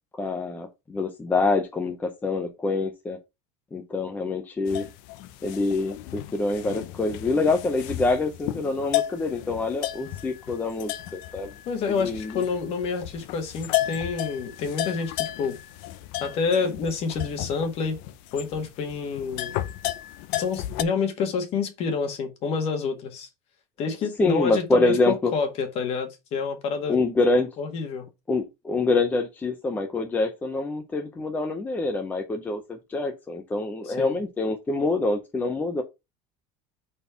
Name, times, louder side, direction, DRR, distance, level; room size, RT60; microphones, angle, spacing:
voice 1, 0.1-3.2 3.7-4.9 5.4-11.5 11.9-12.4 24.2-25.3 26.9-27.5 28.3-35.8, left 3 dB, 10° left, 0.7 m, -26 dB
sound 1, 4.7-20.8, left 15 dB, 65° left, 0.6 m, -34 dB
voice 2, 11.6-15.6 16.2-18.0 18.3-19.5 20.3-23.3 23.8-27.0 27.6-28.1 33.8-34.1, left 5 dB, 40° left, 1.7 m, -28 dB
5.3 x 4.3 x 5.6 m
cardioid pair, 175°, 15 cm